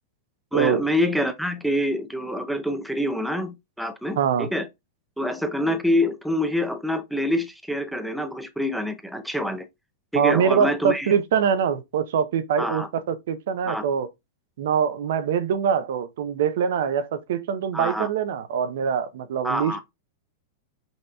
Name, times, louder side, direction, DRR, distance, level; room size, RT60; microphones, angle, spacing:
voice 1, 0.5-4.7 5.2-9.6 10.1-11.1 12.6-12.9 13.7-13.8 17.7-18.1 19.4-19.8, equal, ahead, 0.5 m, -26 dB
voice 2, 4.2-4.5 10.1-14.1 14.6-19.8, right 7 dB, 70° right, 0.6 m, -23 dB
5.5 x 2.8 x 2.3 m
hypercardioid pair, 120°, 0 cm